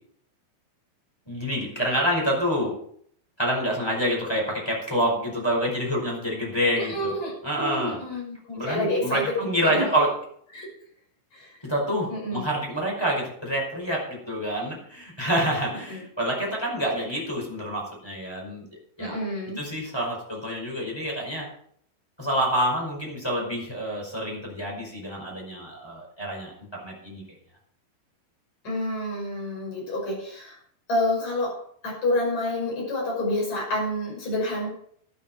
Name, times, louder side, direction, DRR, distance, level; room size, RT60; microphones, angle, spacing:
voice 1, 1.3-2.8 3.4-7.1 7.4-8.0 8.5-10.1 11.6-18.6 19.0-19.2 19.6-21.5 22.2-27.2, equal, 5° left, -2 dB, 4.6 m, -27 dB
voice 2, 6.8-9.9 10.5-10.7 11.3-11.6 12.1-12.5 15.9-16.0 19.0-19.6 28.6-30.6 30.9-34.7, left 1 dB, 35° left, -2 dB, 7.0 m, -28 dB
13.0 x 12.0 x 4.6 m, 0.63 s
omnidirectional pair, 5.9 m